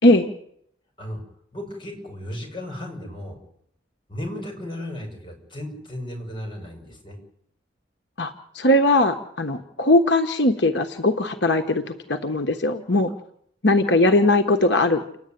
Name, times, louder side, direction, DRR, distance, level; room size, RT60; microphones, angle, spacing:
voice 1, 1.5-3.4 4.1-7.2, left 1 dB, 30° left, 2 dB, 7.3 m, -35 dB
voice 2, 8.2-13.1 13.6-15.0, left 2 dB, 80° left, 6 dB, 1.4 m, -20 dB
29.0 x 11.0 x 9.4 m, 0.71 s
head